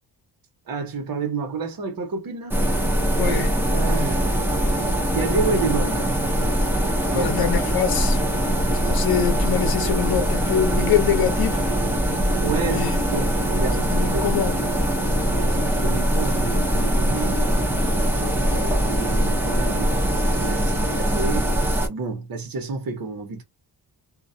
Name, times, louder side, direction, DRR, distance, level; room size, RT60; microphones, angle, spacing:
voice 1, 0.7-2.6 3.7-4.3 5.1-6.2 7.1-7.3 12.4-12.8 13.1-14.3 15.2-17.4 18.9-21.5 21.9-23.4, right 4 dB, 55° right, 0.9 m, -29 dB
sound 1, 2.5-21.9, equal, 5° right, 0.6 m, -22 dB
voice 2, 3.2-3.5 7.1-8.2 8.8-11.7 12.6-13.0 13.8-14.7 18.4-18.7, left 9 dB, 60° left, 0.8 m, -24 dB
2.3 x 2.1 x 2.6 m
wide cardioid pair, 120°, 42 cm